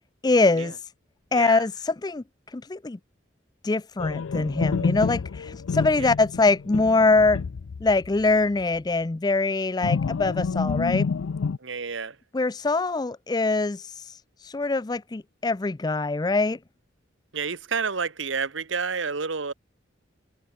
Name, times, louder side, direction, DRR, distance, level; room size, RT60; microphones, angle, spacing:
voice 1, 0.2-0.7 1.3-2.2 2.5-3.0 3.6-7.4 7.8-11.1 12.3-13.8 14.4-16.6, left 3 dB, 20° left, 0.4 m, -23 dB
voice 2, 1.3-1.6 6.0-6.1 11.6-12.2 17.3-19.5, right 5 dB, 75° right, 1.3 m, -30 dB
sound 1, 4.0-8.3 8.6-8.8 9.8-11.6, left 5 dB, 90° left, 0.5 m, -28 dB
head